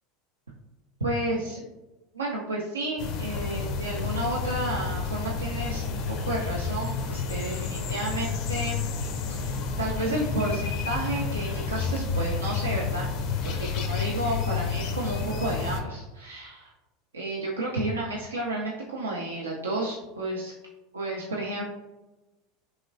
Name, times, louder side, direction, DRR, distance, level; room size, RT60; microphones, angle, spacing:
voice 1, 1.0-1.6 2.1-8.8 9.4-13.1 13.5-16.7 17.1-20.5 20.9-21.8, right 1 dB, 90° right, -4 dB, 0.4 m, -31 dB
sound 1, 3.0-15.8, left 5 dB, 55° left, 0.4 m, -30 dB
3.0 x 2.8 x 2.5 m, 1.1 s
hypercardioid pair, 80°, 0 cm